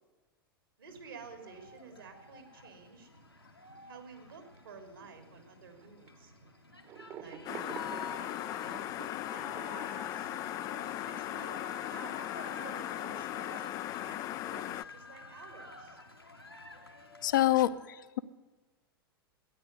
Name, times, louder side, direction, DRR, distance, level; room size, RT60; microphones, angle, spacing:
voice 1, 0.8-3.1 3.9-6.3 7.1-8.8 9.3-10.3 11.0-11.6 11.8-12.3 12.6-16.0, right 5 dB, 70° right, 6 dB, 3.2 m, -52 dB
sound 1, 0.9-17.7, left 2 dB, 90° left, 1.9 m, -49 dB
sound 2, 2.8-2.9 3.2-3.4 4.2-4.9 5.8-6.1 6.8-9.1, right 8 dB, 30° right, 1.2 m, -47 dB
sound 3, 7.4-14.8, left 15 dB, 30° left, 0.4 m, -38 dB
voice 2, 17.2-18.2, left 14 dB, 55° left, 10 dB, 0.8 m, -27 dB
13.0 x 10.5 x 9.4 m, 1.3 s
figure-of-eight pair, 95°, 12 cm